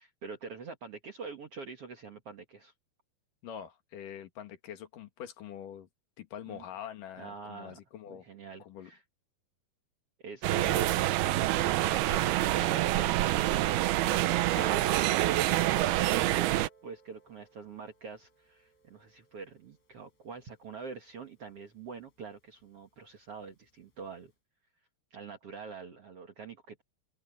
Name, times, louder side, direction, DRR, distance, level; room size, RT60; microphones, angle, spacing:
voice 1, 0.0-2.7 6.5-6.6 7.2-7.8 8.1-9.0 10.2-24.3 25.1-26.8, right 5 dB, 55° right, 1.6 m, -45 dB
voice 2, 3.4-5.9 6.2-8.3 8.6-8.9 10.6-10.8, left 9 dB, 55° left, 3.2 m, -44 dB
sound 1, 10.4-16.7, right 15 dB, 75° right, 2.5 m, -27 dB
Piano, 14.6-19.8 20.6-20.7, right 1 dB, 75° left, 10.5 m, -50 dB
open air
omnidirectional pair, 5.0 m